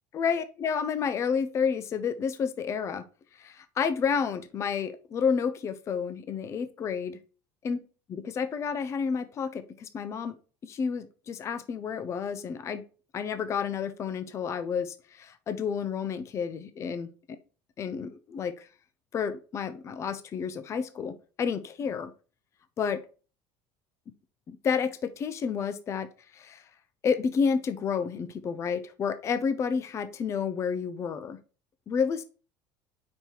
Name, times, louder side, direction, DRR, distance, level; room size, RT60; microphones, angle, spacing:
voice 1, 0.1-3.0 3.3-7.2 7.6-7.8 8.1-10.4 10.6-12.8 13.1-17.1 17.8-18.7 19.1-22.1 22.8-23.0 24.5-26.1 26.3-26.6 27.0-31.4 31.9-32.2, left 6 dB, 30° left, 12 dB, 0.5 m, -30 dB
5.2 x 4.5 x 4.5 m, 0.36 s
cardioid pair, 145°, 10 cm